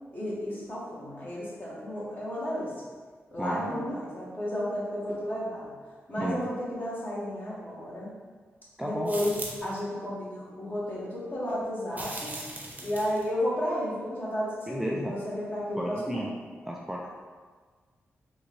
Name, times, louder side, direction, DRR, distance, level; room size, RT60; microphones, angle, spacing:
voice 1, 0.1-2.7 3.3-5.7 6.1-8.1 8.8-9.3 9.6-12.3 12.8-16.3, equal, 40° left, -7 dB, 1.4 m, -32 dB
voice 2, 3.4-3.8 6.2-6.4 8.8-9.2 14.7-15.1 15.8-16.3 16.6-17.1, equal, 5° right, -3 dB, 0.4 m, -33 dB
sound 1, 9.0-9.8 11.9-13.3, right 2 dB, 35° right, 0.8 m, -39 dB
3.8 x 2.5 x 3.1 m, 1.5 s
cardioid pair, 65°, 5 cm